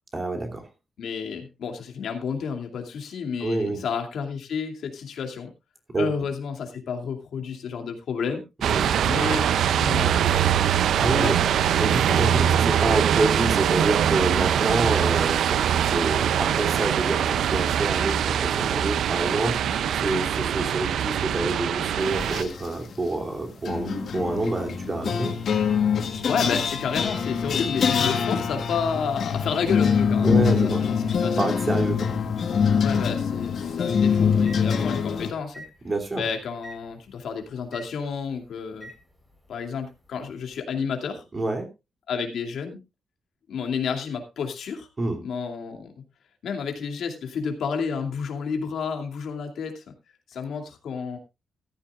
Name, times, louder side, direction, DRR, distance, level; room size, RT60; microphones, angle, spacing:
voice 1, 0.1-0.7 3.4-3.8 5.9-6.1 8.6-8.9 10.9-11.4 11.8-25.3 30.2-30.8 31.4-32.1 35.8-36.2 41.3-41.7 45.0-45.2, right 2 dB, 25° right, 3 dB, 2.9 m, -27 dB
voice 2, 1.0-5.5 6.0-8.4 9.0-10.3 11.1-11.3 26.3-31.0 31.2-31.5 32.8-35.6 36.1-38.9 39.5-41.2 42.1-42.8 43.5-44.9 45.2-45.9 46.4-49.8 50.3-51.2, left 6 dB, 75° left, 4 dB, 2.6 m, -30 dB
sound 1, 8.6-22.4, right 9 dB, 90° right, 0.5 m, -23 dB
sound 2, 22.1-22.7 23.7-35.3, left 6 dB, 60° left, 1.5 m, -24 dB
Microwave oven, 22.6-35.1 35.5-35.7 36.6-36.8 37.7-37.9 38.8-39.0, right 1 dB, 5° right, 4.2 m, -45 dB
14.5 x 13.5 x 2.4 m, 0.25 s
wide cardioid pair, 155°, 0 cm